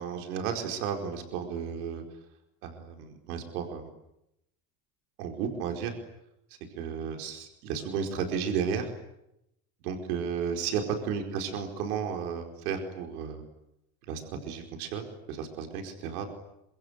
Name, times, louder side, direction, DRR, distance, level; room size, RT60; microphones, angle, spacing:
voice 1, 0.0-2.0 2.6-3.9 5.2-5.9 6.7-8.9 9.8-10.8 11.1-13.4 14.1-16.3, right 7 dB, 90° right, 4 dB, 4.8 m, -33 dB
26.5 x 23.5 x 9.7 m, 0.83 s
supercardioid pair, 80°, 44 cm